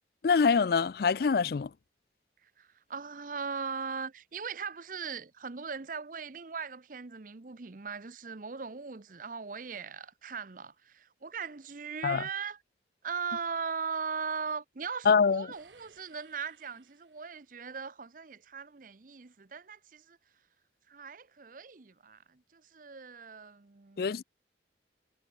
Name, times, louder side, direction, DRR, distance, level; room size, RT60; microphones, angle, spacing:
voice 1, 0.2-1.7 12.0-12.2 15.1-15.5 24.0-24.2, left 5 dB, 55° left, 0.4 m, -24 dB
voice 2, 2.4-12.6 13.0-20.2 20.9-24.2, right 5 dB, 45° right, 0.7 m, -39 dB
sound 1, 15.5-17.8, right 5 dB, 80° right, 4.4 m, -63 dB
head